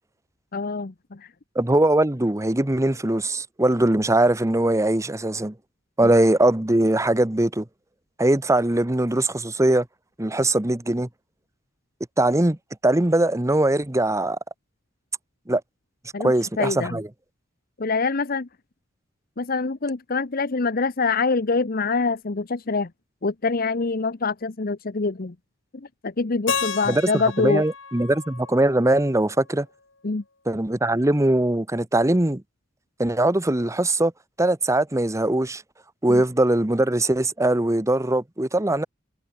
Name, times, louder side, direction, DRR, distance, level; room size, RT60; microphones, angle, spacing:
voice 1, 0.5-1.2 16.1-17.0 17.8-18.5 19.4-22.9 23.2-25.3 26.0-27.6 30.0-30.2 36.1-36.2, left 4 dB, 50° left, 0.8 m, -25 dB
voice 2, 1.5-5.5 6.0-7.6 8.2-9.9 10.2-11.1 12.2-12.6 12.8-14.4 15.5-15.6 16.2-17.1 26.9-29.7 30.5-32.4 33.0-34.1 34.4-35.6 36.0-38.9, right 1 dB, 15° right, 0.9 m, -21 dB
Keyboard (musical), 26.5-29.4, left 6 dB, 80° left, 6.7 m, -32 dB
head